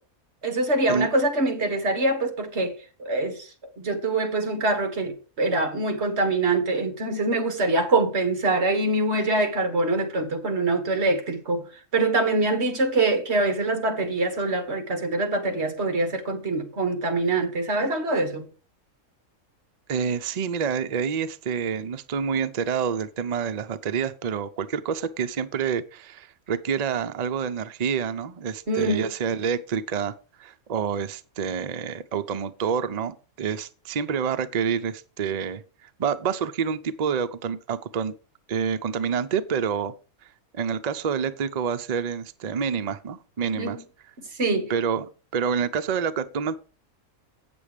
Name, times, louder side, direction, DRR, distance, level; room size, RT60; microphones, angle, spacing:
voice 1, 0.4-2.7 3.0-3.5 3.8-11.7 11.9-18.5 28.7-29.1 43.6-43.8 44.4-44.7, right 2 dB, 45° right, 1.7 m, -24 dB
voice 2, 19.9-38.1 38.5-39.9 40.5-43.8 44.7-45.1 45.3-46.6, right 7 dB, 85° right, 0.3 m, -28 dB
8.5 x 7.0 x 4.9 m
omnidirectional pair, 1.6 m